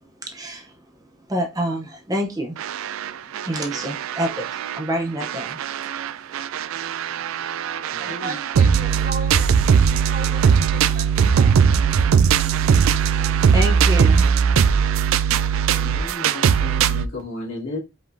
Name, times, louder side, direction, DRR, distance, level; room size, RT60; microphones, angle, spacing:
voice 1, 0.2-0.7 1.3-2.6 3.5-5.6 13.5-14.3, equal, 15° right, 0.6 m, -27 dB
sound 1, 2.6-4.8 5.2-17.1, right 7 dB, 80° right, 0.3 m, -19 dB
voice 2, 8.0-11.6, right 2 dB, 45° right, 1.2 m, -36 dB
voice 3, 15.8-17.8, left 2 dB, 70° left, 2.3 m, -33 dB
5.1 x 3.6 x 2.6 m
head